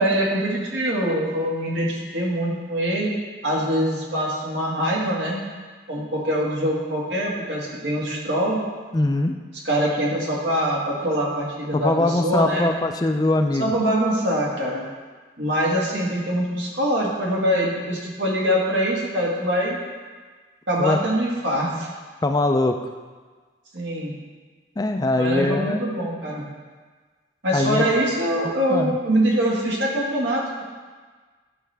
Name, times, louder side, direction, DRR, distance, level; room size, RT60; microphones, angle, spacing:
voice 1, 0.0-3.1 3.4-5.4 5.9-8.6 9.6-12.7 13.6-14.8 15.4-19.8 20.7-21.9 23.7-24.1 25.2-26.4 27.4-30.6, equal, 85° right, -3 dB, 1.8 m, -23 dB
voice 2, 8.9-9.3 11.7-13.7 20.8-21.0 22.2-22.8 24.8-25.8 27.5-27.8 28.4-29.0, left 2 dB, 20° left, 6 dB, 0.3 m, -22 dB
10.5 x 5.8 x 3.4 m, 1.4 s
head